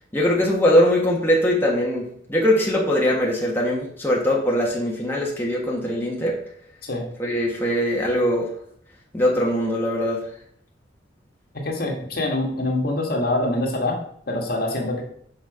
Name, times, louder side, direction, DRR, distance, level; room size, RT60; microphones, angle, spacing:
voice 1, 0.1-6.4 7.2-8.5 9.1-10.2, equal, 10° left, -3 dB, 1.5 m, -21 dB
voice 2, 11.5-14.0 14.3-15.0, left 2 dB, 55° left, 0 dB, 1.8 m, -25 dB
6.3 x 6.1 x 5.0 m, 0.63 s
head